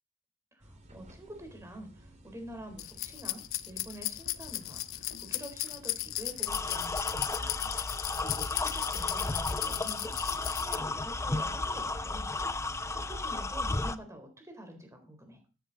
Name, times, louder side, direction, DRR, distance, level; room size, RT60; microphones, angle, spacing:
voice 1, 0.5-10.1 10.5-12.3 12.9-15.4, right 1 dB, 15° right, 4 dB, 4.1 m, -47 dB
sound 1, 0.6-13.4, equal, 35° right, 3.0 m, -53 dB
sound 2, 2.8-10.8, left 16 dB, 85° left, 0.7 m, -36 dB
sound 3, 6.5-14.0, left 2 dB, 15° left, 0.6 m, -33 dB
13.0 x 11.5 x 4.1 m, 0.34 s
head